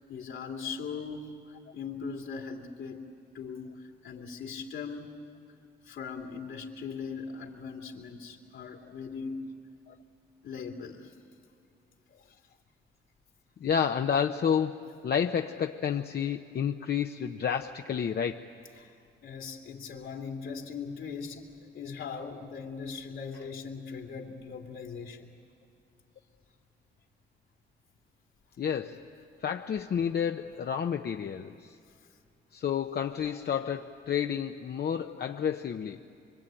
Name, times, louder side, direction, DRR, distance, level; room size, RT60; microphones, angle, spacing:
voice 1, 0.1-1.4 1.7-3.0 3.3-5.1 5.8-9.4 10.4-11.1 18.8-18.9 19.2-25.3, left 5 dB, 70° left, 2 dB, 2.9 m, -40 dB
voice 2, 13.6-18.5 28.6-29.0 29.4-31.5 32.5-36.0, left 8 dB, 50° left, 5 dB, 0.8 m, -30 dB
25.5 x 24.0 x 9.0 m, 2.4 s
cardioid pair, 75°, 20 cm